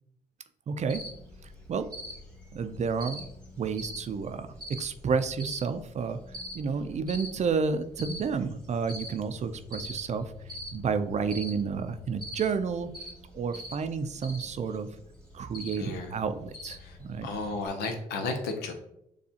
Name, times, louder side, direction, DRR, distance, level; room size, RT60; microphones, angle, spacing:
voice 1, 0.7-1.0 1.4-1.9 2.5-3.3 3.6-6.2 6.5-10.3 10.7-12.9 13.3-14.9 15.3-17.3, right 5 dB, 45° right, 10 dB, 0.4 m, -30 dB
Cricket, 0.9-17.7, left 1 dB, 5° left, 1.4 m, -44 dB
voice 2, 15.8-16.1 16.8-18.7, left 3 dB, 90° left, 4 dB, 0.7 m, -34 dB
6.8 x 2.4 x 2.8 m, 0.79 s
supercardioid pair, 65°, 16 cm